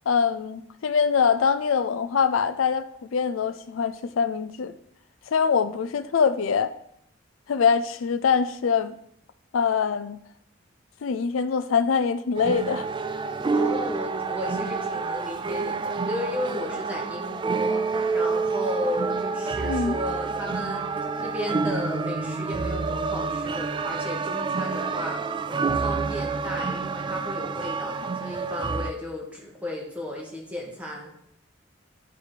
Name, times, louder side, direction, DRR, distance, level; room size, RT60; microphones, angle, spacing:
voice 1, 0.1-4.7 5.3-6.7 7.5-9.0 9.5-10.2 11.0-12.9 19.6-20.0, left 6 dB, 80° left, 0.4 m, -24 dB
sound 1, 12.3-28.9, right 4 dB, 25° right, 0.3 m, -28 dB
voice 2, 13.5-20.9 21.2-31.1, left 1 dB, 5° right, 1.8 m, -34 dB
10.5 x 4.8 x 4.9 m
head